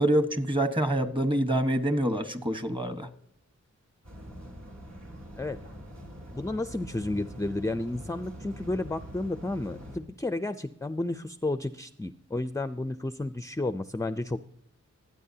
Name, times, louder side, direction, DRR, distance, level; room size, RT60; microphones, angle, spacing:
voice 1, 0.0-3.1, right 1 dB, 15° right, 9 dB, 1.3 m, -26 dB
sound 1, 4.0-10.0, equal, 60° right, 4.2 m, -44 dB
voice 2, 6.3-14.4, left 2 dB, 10° left, 12 dB, 0.4 m, -32 dB
25.5 x 9.4 x 2.8 m, 0.70 s
wide cardioid pair, 95°, 30 cm